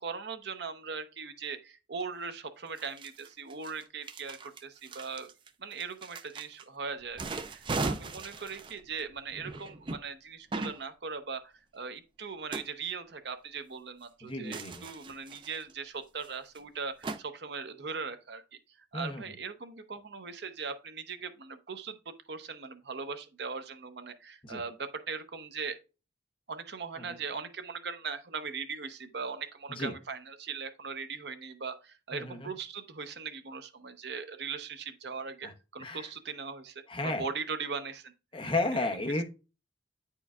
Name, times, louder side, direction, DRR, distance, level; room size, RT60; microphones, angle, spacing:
voice 1, 0.0-5.3 5.6-18.4 18.9-25.7 26.5-38.1 38.9-39.2, right 5 dB, 60° right, 0.7 m, -39 dB
sound 1, 2.0-2.1 2.8-6.6 7.0-10.0 10.5-10.8 12.5-12.7 14.5-15.7 16.2-16.3 16.6-16.7 17.0-17.2, right 3 dB, 25° right, 0.3 m, -38 dB
voice 2, 14.2-14.8 18.9-19.2 24.4-24.6 29.8-29.9 32.1-32.5 35.4-35.5 35.8-36.1 36.9-37.3 38.3-39.2, left 2 dB, 25° left, 0.7 m, -33 dB
9.0 x 4.5 x 2.3 m
head